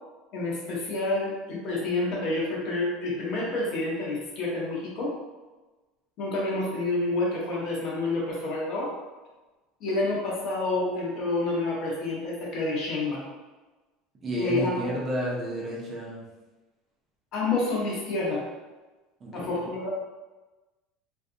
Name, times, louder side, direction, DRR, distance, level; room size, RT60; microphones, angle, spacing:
voice 1, 0.3-5.1 6.2-8.9 9.8-13.2 14.4-14.9 17.3-18.4 19.3-19.9, left 2 dB, 50° left, -3 dB, 0.7 m, -28 dB
voice 2, 14.2-16.2 19.2-19.5, equal, 25° right, -5 dB, 0.6 m, -31 dB
2.5 x 2.3 x 2.6 m, 1.2 s
cardioid pair, 145°, 0 cm